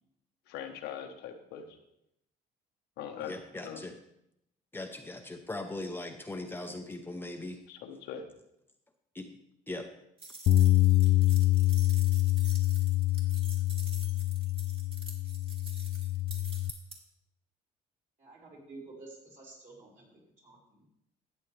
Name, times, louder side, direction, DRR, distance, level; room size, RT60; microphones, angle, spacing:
voice 1, 0.5-1.6 3.0-3.3 3.6-3.8 7.7-8.2, left 9 dB, 90° left, 4 dB, 1.2 m, -41 dB
voice 2, 3.2-4.0 4.7-7.6 9.1-9.3 9.7-9.9, left 2 dB, 15° left, 4 dB, 0.7 m, -39 dB
sound 1, 10.2-17.0, right 3 dB, 30° right, 2.1 m, -48 dB
Bass guitar, 10.5-16.7, left 16 dB, 60° left, 0.4 m, -26 dB
voice 3, 18.2-20.9, right 3 dB, 50° right, -4 dB, 4.7 m, -51 dB
13.0 x 8.3 x 3.3 m, 0.79 s
cardioid pair, 110°, 17 cm